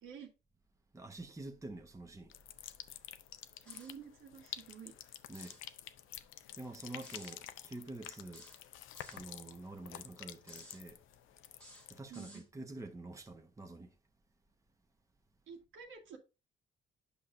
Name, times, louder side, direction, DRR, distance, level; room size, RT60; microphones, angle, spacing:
voice 1, 0.0-0.3 3.6-4.9 12.1-12.4 15.5-16.2, right 7 dB, 80° right, 1.7 m, -50 dB
voice 2, 0.9-2.3 5.3-5.6 6.6-8.5 9.1-11.0 11.9-13.9, right 2 dB, 15° right, 1.0 m, -47 dB
sound 1, 2.3-12.0, left 12 dB, 85° left, 0.5 m, -50 dB
sound 2, 3.7-4.0 5.2-5.7 7.0-7.4 8.3-9.3 10.4-10.8 11.5-12.5, equal, 5° left, 1.5 m, -56 dB
8.4 x 5.6 x 2.6 m
cardioid pair, 90°, 20 cm